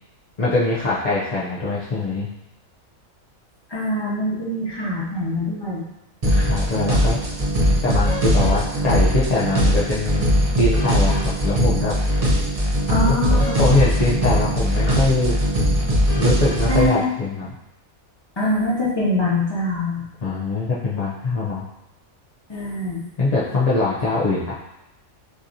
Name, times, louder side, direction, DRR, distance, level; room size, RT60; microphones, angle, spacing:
voice 1, 0.4-2.3 6.3-7.2 7.8-11.9 13.0-15.3 16.2-17.5 20.2-21.7 23.2-24.5, left 3 dB, 45° left, -8 dB, 0.5 m, -22 dB
voice 2, 3.7-5.8 12.9-13.6 16.7-17.1 18.4-20.0 22.5-23.0, left 1 dB, 20° left, -6 dB, 1.1 m, -23 dB
sound 1, 6.2-16.9, equal, 35° right, 0.7 m, -20 dB
6.3 x 2.8 x 2.7 m, 0.90 s
omnidirectional pair, 1.5 m